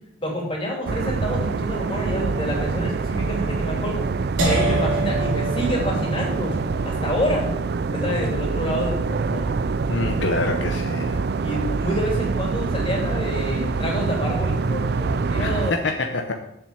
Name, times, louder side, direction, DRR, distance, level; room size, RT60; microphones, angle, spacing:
voice 1, 0.2-4.0 4.4-6.6 6.8-7.5 7.9-9.5 11.4-15.7, equal, 25° left, -1 dB, 2.9 m, -28 dB
sound 1, 0.9-15.7, right 4 dB, 50° right, 0.4 m, -25 dB
sound 2, 4.4-10.3, right 1 dB, 90° right, 2.7 m, -29 dB
voice 2, 9.9-11.2 15.4-16.3, left 3 dB, 65° left, 4 dB, 0.8 m, -26 dB
7.3 x 7.0 x 7.3 m, 0.81 s
head